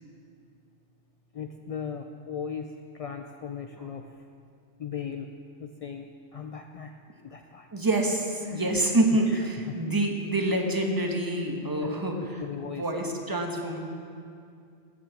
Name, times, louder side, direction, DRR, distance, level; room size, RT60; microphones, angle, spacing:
voice 1, 1.3-4.1 4.8-5.3 5.6-6.9 7.2-7.7 8.4-8.8 9.2-9.7 11.8-11.9 12.4-12.8, left 7 dB, 60° left, 5 dB, 0.3 m, -37 dB
voice 2, 7.7-12.1 12.6-13.8, right 1 dB, 20° right, 2 dB, 1.2 m, -26 dB
16.0 x 6.3 x 7.2 m, 2.4 s
omnidirectional pair, 1.2 m